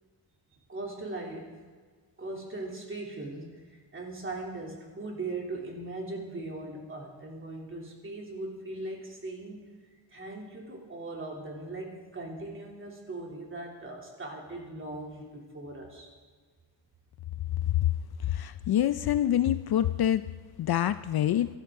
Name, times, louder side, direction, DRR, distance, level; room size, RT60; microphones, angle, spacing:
voice 1, 0.7-1.5 2.2-9.7 10.1-16.1, right 2 dB, 25° right, 0 dB, 3.0 m, -39 dB
voice 2, 18.3-20.2 20.6-21.5, left 11 dB, 55° left, 13 dB, 0.5 m, -26 dB
24.0 x 13.0 x 3.7 m, 1.5 s
wide cardioid pair, 150°, 45 cm